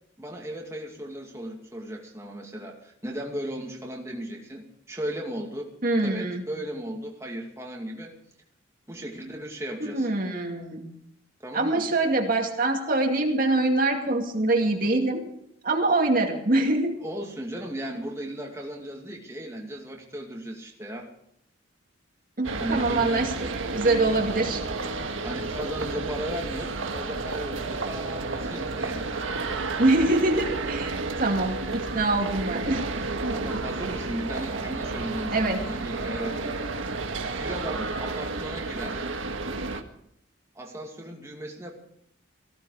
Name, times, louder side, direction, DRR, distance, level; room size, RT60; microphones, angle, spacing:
voice 1, 0.2-5.7 6.0-8.1 8.9-10.1 11.4-11.8 17.0-21.1 22.5-23.2 23.8-24.3 25.2-29.2 29.5-29.6 29.9-30.0 33.3-36.6 37.4-39.0 40.5-41.7, right 1 dB, 15° right, -1 dB, 2.3 m, -36 dB
voice 2, 5.8-6.5 9.8-10.9 11.5-15.2 15.6-17.0 22.4-24.6 29.8-32.8 35.3-35.6, right 2 dB, 45° right, 2 dB, 2.3 m, -24 dB
sound 1, 22.4-39.8, right 3 dB, 85° right, 1.6 m, -31 dB
18.5 x 15.5 x 4.9 m, 0.72 s
head